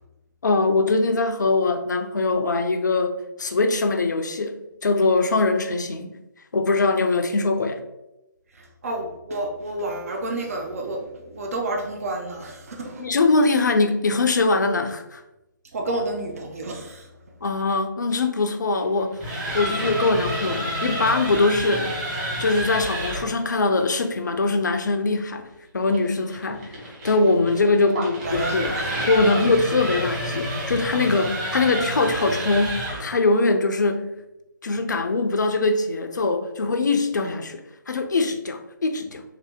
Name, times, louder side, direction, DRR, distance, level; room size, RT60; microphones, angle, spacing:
voice 1, 0.4-6.1 6.5-7.8 13.0-15.2 17.4-19.2 19.5-21.9 22.4-25.4 25.7-26.8 27.0-28.8 29.1-34.1 34.6-39.2, left 3 dB, 60° left, 6 dB, 0.5 m, -22 dB
voice 2, 8.8-13.0 15.7-17.0 27.9-28.9, right 2 dB, 45° right, 2 dB, 0.6 m, -30 dB
sound 1, 19.0-23.3 25.9-33.1, right 1 dB, 25° right, 1.3 m, -29 dB
3.2 x 2.8 x 3.4 m, 0.91 s
figure-of-eight pair, 145°, 11 cm